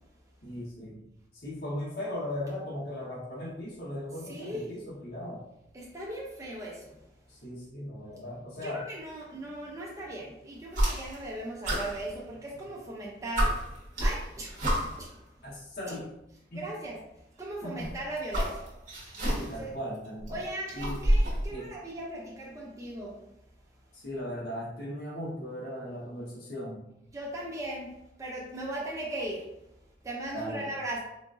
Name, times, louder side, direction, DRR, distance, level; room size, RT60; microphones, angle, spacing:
voice 1, 0.4-1.1 1.3-5.4 7.3-8.8 15.4-16.1 16.5-16.7 17.6-17.9 19.2-20.4 20.7-21.0 21.5-21.8 23.9-26.9 30.3-30.7, left 1 dB, 60° left, -7 dB, 1.0 m, -38 dB
voice 2, 4.3-4.7 5.7-7.0 8.6-13.5 14.0-14.6 15.0-15.2 16.5-17.0 17.4-18.7 19.6-19.7 20.3-23.1 27.1-27.9 28.2-29.4 30.0-31.0, right 1 dB, 20° right, -4 dB, 0.4 m, -38 dB
sound 1, 10.7-11.3 11.6-12.7 13.0-13.1 13.3-15.1 16.2-16.3 17.6-19.7 20.0-21.5, equal, 45° right, 0.9 m, -29 dB
3.8 x 2.5 x 2.4 m, 0.86 s
head